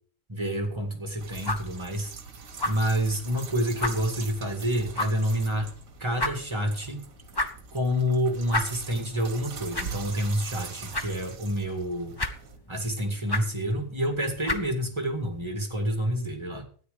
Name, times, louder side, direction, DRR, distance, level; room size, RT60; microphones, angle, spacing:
voice 1, 0.3-2.1 2.7-5.7 6.0-7.1 7.7-12.2 12.7-16.7, equal, 15° right, 6 dB, 2.0 m, -28 dB
sound 1, 0.7-15.5, left 2 dB, 25° left, 0.5 m, -36 dB
sound 2, 1.2-12.6, right 6 dB, 50° right, 1.7 m, -43 dB
13.0 x 9.9 x 5.1 m, 0.44 s
omnidirectional pair, 1.9 m